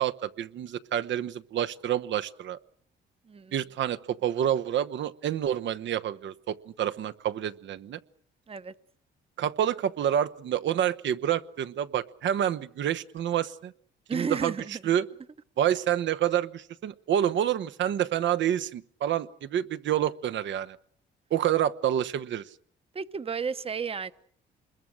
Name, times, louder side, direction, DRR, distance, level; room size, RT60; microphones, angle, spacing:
voice 1, 0.0-2.6 3.5-8.0 9.4-13.7 14.1-14.5 14.8-15.0 15.6-20.8 21.3-22.4, right 10 dB, 70° right, 1.1 m, -28 dB
voice 2, 14.1-14.8 22.9-24.1, right 5 dB, 30° right, 1.0 m, -32 dB
26.5 x 21.5 x 6.4 m
cardioid pair, 90°, 20 cm